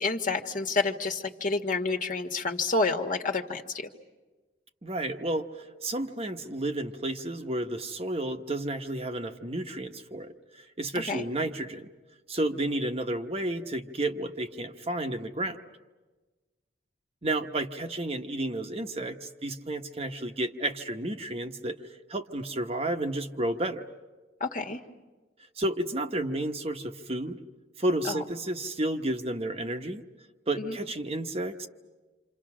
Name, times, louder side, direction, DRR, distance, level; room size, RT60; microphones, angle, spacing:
voice 1, 0.0-3.9 10.9-11.3 24.4-24.8 28.0-28.2 30.6-30.8, left 3 dB, 45° left, 3 dB, 1.7 m, -29 dB
voice 2, 4.8-5.5 5.8-10.3 10.8-11.9 12.3-15.6 17.2-21.8 22.1-23.8 25.6-27.4 27.8-30.0 30.5-31.7, right 1 dB, 35° right, 5 dB, 1.1 m, -31 dB
28.5 x 27.0 x 6.2 m, 1.3 s
head